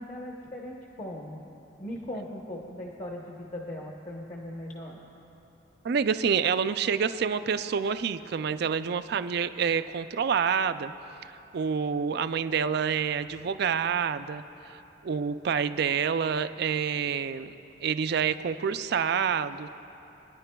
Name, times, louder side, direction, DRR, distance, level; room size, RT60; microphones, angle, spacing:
voice 1, 0.0-1.4 1.8-5.0 13.3-13.5, left 1 dB, 40° left, -2 dB, 0.9 m, -39 dB
voice 2, 5.8-10.9 11.5-17.5 17.8-19.7, right 6 dB, 60° right, 12 dB, 0.4 m, -28 dB
27.5 x 10.5 x 2.3 m, 3.0 s
head